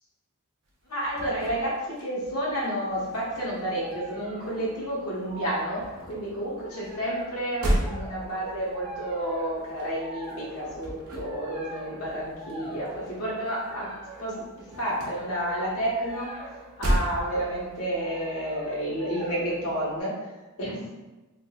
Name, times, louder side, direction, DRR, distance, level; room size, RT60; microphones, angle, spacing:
sound 1, 0.7-2.7 2.9-4.9 5.1-13.8 14.1-17.8, equal, 70° right, 0.8 m, -34 dB
voice 1, 0.9-13.9 14.2-14.4 14.8-16.3 16.8-20.1 20.6-20.9, right 1 dB, 85° left, -5 dB, 1.1 m, -30 dB
sound 2, 2.9-20.0, right 1 dB, 25° right, 0.6 m, -44 dB
3.7 x 2.6 x 2.4 m, 1.1 s
head